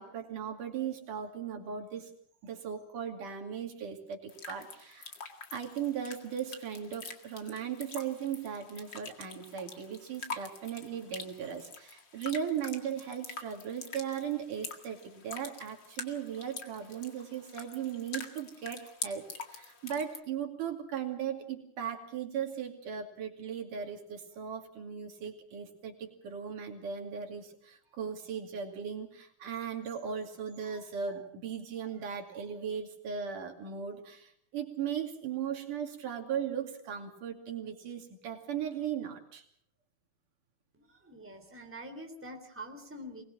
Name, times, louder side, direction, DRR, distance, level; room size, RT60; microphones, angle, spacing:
voice 1, 0.0-2.1 2.4-5.2 5.5-39.4, right 8 dB, 90° right, 3 dB, 4.1 m, -37 dB
sound 1, 4.3-20.2, left 5 dB, 40° left, 2.4 m, -45 dB
voice 2, 40.7-43.2, equal, 5° right, 4 dB, 3.0 m, -45 dB
24.0 x 20.0 x 6.2 m, 0.65 s
omnidirectional pair, 3.5 m